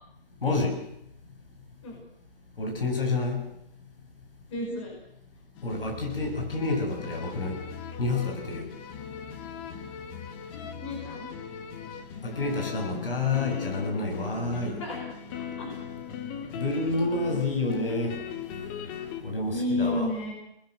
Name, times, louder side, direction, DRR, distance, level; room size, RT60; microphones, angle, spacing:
voice 1, 0.4-0.8 2.6-3.4 5.6-7.6 8.0-8.6 12.2-14.8 16.5-18.2 19.2-20.1, left 3 dB, 65° left, 2 dB, 6.7 m, -29 dB
voice 2, 4.5-5.0 10.8-11.3 14.8-15.0 15.4-15.7 19.5-20.3, left 2 dB, 30° left, 0 dB, 5.6 m, -31 dB
sound 1, 5.6-19.2, left 7 dB, 10° left, 0.8 m, -39 dB
23.5 x 20.0 x 6.6 m, 0.80 s
hypercardioid pair, 155°, 30 cm